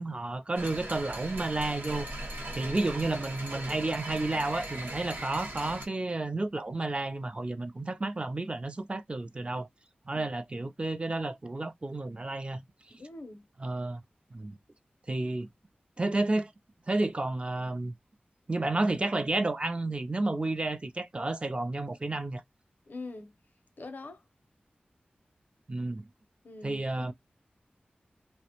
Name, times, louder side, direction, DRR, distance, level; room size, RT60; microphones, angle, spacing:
voice 1, 0.0-2.1 2.6-9.7 10.1-12.6 13.6-14.0 14.3-14.6 15.1-15.5 16.0-16.5 16.9-17.9 18.5-22.4 25.7-26.1 26.6-27.1, right 2 dB, 35° right, 0.3 m, -31 dB
sound 1, 0.6-5.9, right 1 dB, 75° right, 0.7 m, -39 dB
voice 2, 13.0-13.5 22.9-23.3 23.8-24.2 26.4-27.1, left 2 dB, 65° left, 0.5 m, -43 dB
2.4 x 2.1 x 2.8 m
wide cardioid pair, 65°, 3 cm